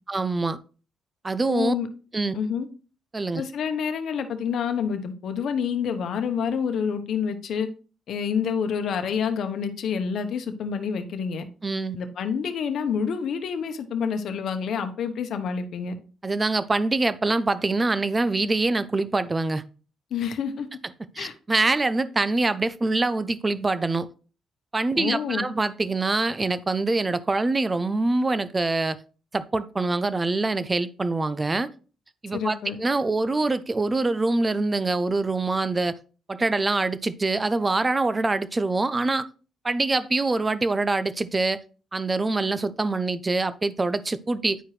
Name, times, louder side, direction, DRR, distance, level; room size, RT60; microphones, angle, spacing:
voice 1, 0.1-0.6 1.2-1.7 2.1-2.3 3.1-3.4 11.6-12.0 16.2-19.6 21.2-24.1 24.7-29.0 29.3-31.7 32.2-35.9 36.3-39.3 39.6-41.6 41.9-44.6, right 3 dB, 25° right, 0.6 m, -24 dB
voice 2, 1.5-1.9 2.3-2.7 3.3-7.7 8.1-11.4 12.0-15.9 20.1-20.7 21.2-21.3 24.9-25.5 32.3-32.8, left 6 dB, 65° left, 1.0 m, -28 dB
10.0 x 4.7 x 3.2 m
cardioid pair, 90°, 0 cm